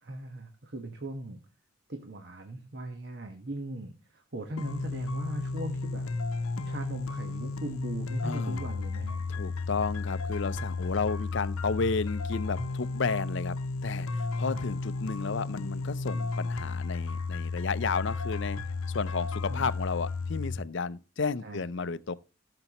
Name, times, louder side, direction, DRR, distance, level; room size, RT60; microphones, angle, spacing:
voice 1, 0.0-1.4 1.9-6.1 6.6-9.2 14.5-14.6 19.5-19.7 21.4-21.9, right 1 dB, 50° right, 1.3 m, -39 dB
sound 1, 4.6-20.6, left 3 dB, 85° left, 0.8 m, -33 dB
voice 2, 8.2-8.7 9.3-13.6 13.8-18.6 18.9-22.2, left 4 dB, 55° left, 0.5 m, -32 dB
16.0 x 6.8 x 3.0 m
head